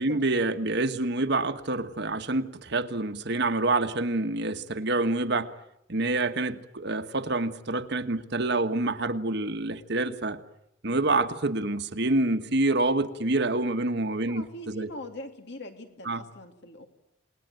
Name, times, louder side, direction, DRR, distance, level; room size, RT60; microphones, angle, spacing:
voice 1, 0.0-5.5 5.9-10.4 10.8-14.9 16.0-16.2, right 2 dB, 60° right, 1.5 m, -27 dB
voice 2, 14.3-16.9, left 1 dB, 60° left, 2.9 m, -42 dB
28.5 x 20.0 x 9.2 m
head